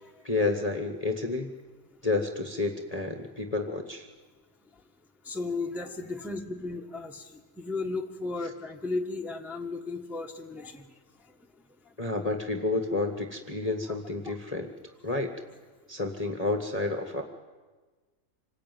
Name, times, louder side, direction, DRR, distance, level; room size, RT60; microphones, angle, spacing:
voice 1, 0.2-1.5 2.0-4.1 12.0-14.7 15.0-15.3 15.9-17.2, left 3 dB, 25° left, 2 dB, 1.3 m, -30 dB
voice 2, 5.2-10.8 14.2-14.4, left 3 dB, ahead, 2 dB, 1.3 m, -35 dB
26.0 x 19.5 x 9.3 m, 1.3 s
omnidirectional pair, 1.9 m